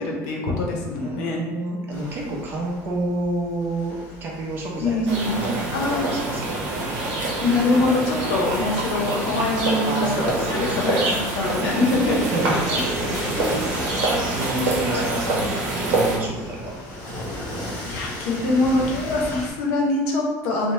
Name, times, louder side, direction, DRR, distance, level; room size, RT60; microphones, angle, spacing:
voice 1, 0.0-1.4 4.8-5.4 5.7-6.1 7.4-12.2 13.0-13.8 17.9-20.7, left 2 dB, 80° left, -1 dB, 0.6 m, -24 dB
voice 2, 1.0-6.8 9.9-11.2 11.6-12.8 14.3-16.7, right 2 dB, 30° right, -2 dB, 0.5 m, -30 dB
sound 1, 1.9-19.5, left 1 dB, 35° left, 0.9 m, -38 dB
sound 2, 5.1-16.2, right 2 dB, 60° right, 0.8 m, -25 dB
2.7 x 2.1 x 3.1 m, 1.2 s
cardioid pair, 175°, 7 cm